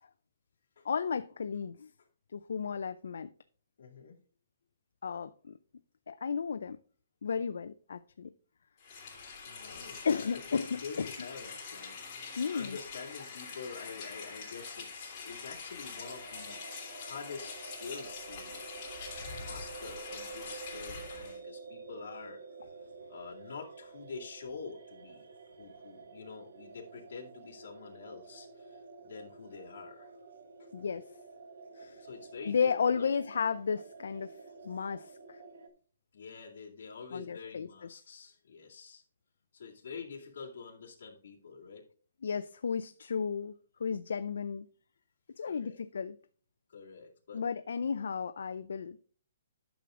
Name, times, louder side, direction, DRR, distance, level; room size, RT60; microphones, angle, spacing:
voice 1, 0.8-1.9 2.3-3.3 5.0-5.5 6.1-6.8 7.2-8.3 10.0-11.1 12.4-12.8 30.7-31.1 31.8-32.0 32.5-34.4 34.6-35.4 37.1-37.7 42.2-43.5 43.8-44.7 45.4-46.2 47.3-49.0, left 6 dB, 80° left, 0.4 m, -33 dB
voice 2, 3.8-4.2 9.4-10.2 10.5-16.6 17.0-18.9 19.3-22.4 23.1-25.3 25.6-30.1 30.6-30.7 31.8-33.1 36.1-39.0 39.5-41.9 45.4-45.8 46.7-47.4, left 5 dB, 60° left, 2.1 m, -47 dB
Rain, 8.8-21.4, left 5 dB, 25° left, 3.1 m, -44 dB
sound 1, 16.0-35.7, right 4 dB, 75° right, 1.2 m, -49 dB
10.0 x 6.1 x 3.7 m
hypercardioid pair, 170°, 0 cm